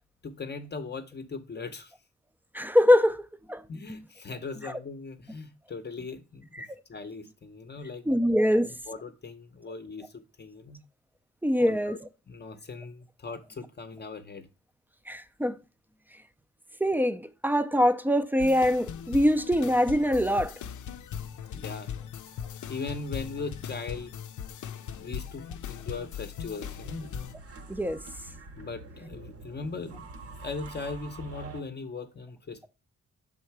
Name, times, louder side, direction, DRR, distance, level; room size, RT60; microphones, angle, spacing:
voice 1, 0.2-1.9 3.7-6.6 6.9-8.3 8.6-10.8 11.6-12.0 12.3-14.5 21.5-21.9 22.7-24.2 24.7-27.1 28.6-30.1 30.4-32.7, left 4 dB, 35° left, 0.6 m, -39 dB
voice 2, 2.5-3.2 3.5-3.6 3.9-4.0 4.6-4.7 6.6-6.7 8.1-8.7 11.4-12.0 15.1-15.6 16.8-20.5 27.7-28.0, equal, 5° right, 0.4 m, -23 dB
sound 1, 18.4-27.3, left 8 dB, 85° left, 0.5 m, -39 dB
sound 2, 26.6-31.6, right 3 dB, 50° right, 1.0 m, -45 dB
6.4 x 3.8 x 4.5 m
wide cardioid pair, 140°, 29 cm